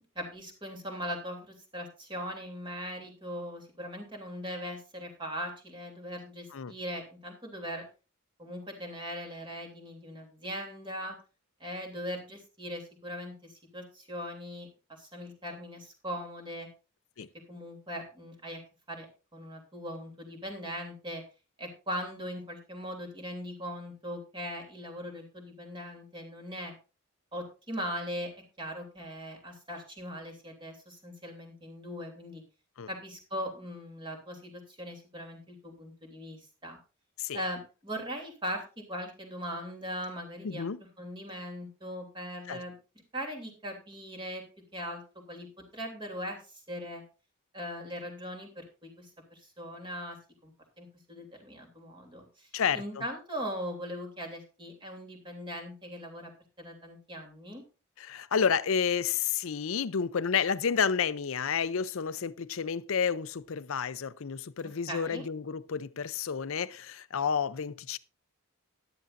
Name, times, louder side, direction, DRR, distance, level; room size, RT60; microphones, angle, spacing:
voice 1, 0.1-7.8 8.4-11.2 11.6-14.7 15.0-16.7 17.5-18.6 18.9-19.1 19.3-21.2 21.6-26.7 27.3-28.3 28.6-32.4 32.9-36.8 37.3-40.6 41.0-42.7 43.1-44.4 44.7-47.0 47.5-50.2 50.4-50.5 50.8-52.5 52.7-56.3 56.6-57.6 64.6-65.2, equal, 20° right, 3.0 m, -40 dB
voice 2, 40.4-40.8 42.5-42.6 52.5-53.0 58.0-68.0, left 6 dB, 65° left, 0.5 m, -30 dB
13.5 x 11.5 x 2.6 m
head